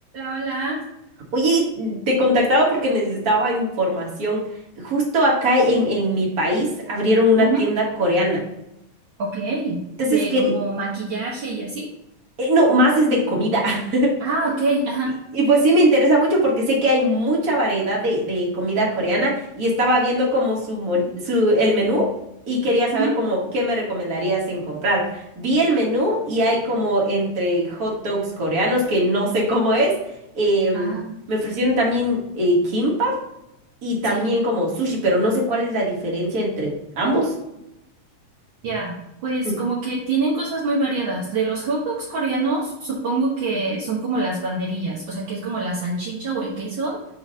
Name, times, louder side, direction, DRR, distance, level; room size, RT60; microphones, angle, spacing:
voice 1, 0.1-0.8 7.4-7.6 9.2-9.8 10.1-11.9 14.2-15.1 22.9-23.1 30.7-31.1 34.0-34.3 38.6-39.0 39.2-47.0, right 3 dB, 65° right, -5 dB, 1.2 m, -25 dB
voice 2, 1.3-4.4 4.8-8.4 10.0-10.5 12.4-14.1 15.3-22.1 22.5-29.9 30.3-31.0 31.3-33.2 33.8-37.3 39.4-39.5, equal, 40° right, -3 dB, 1.5 m, -20 dB
4.9 x 3.8 x 5.4 m, 0.84 s
omnidirectional pair, 3.4 m